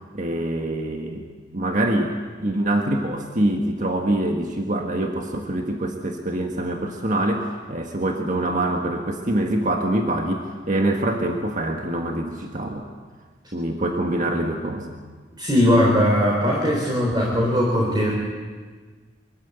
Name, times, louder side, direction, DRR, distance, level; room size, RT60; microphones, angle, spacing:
voice 1, 0.1-1.2 1.5-12.9 13.5-14.9, right 1 dB, 45° right, 2 dB, 1.6 m, -25 dB
voice 2, 15.4-18.1, equal, 25° right, -3 dB, 4.1 m, -19 dB
24.0 x 14.5 x 8.1 m, 1.5 s
head